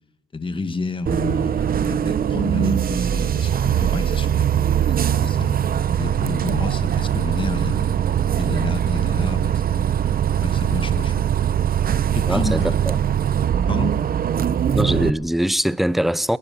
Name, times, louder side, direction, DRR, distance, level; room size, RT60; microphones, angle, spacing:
voice 1, 0.3-4.5 4.9-5.6 6.0-8.0 8.4-9.9 10.4-11.3 12.2-12.8 13.7-14.0, left 3 dB, 25° left, 1.8 m, -30 dB
Bus, 1.1-15.1, right 9 dB, 50° right, 0.9 m, -21 dB
voice 2, 12.3-13.0 14.7-16.4, equal, ahead, 0.7 m, -22 dB
20.0 x 20.0 x 7.3 m
cardioid pair, 90°, 20 cm